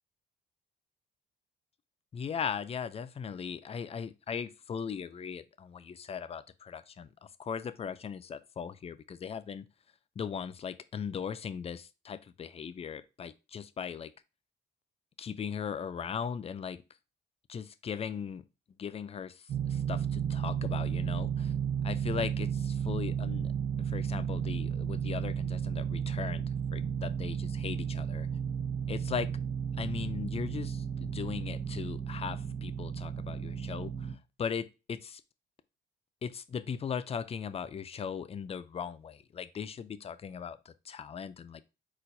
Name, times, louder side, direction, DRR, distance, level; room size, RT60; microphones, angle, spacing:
voice 1, 2.1-7.1 7.4-9.7 10.2-14.1 15.2-16.8 17.5-18.4 18.8-21.5 21.8-23.5 23.8-26.5 26.7-28.3 28.9-29.3 29.8-35.2 36.2-41.6, left 7 dB, 30° left, 0.4 m, -38 dB
sound 1, 19.5-34.1, right 8 dB, 65° right, 0.8 m, -33 dB
4.4 x 4.2 x 2.6 m
cardioid pair, 90°, 20 cm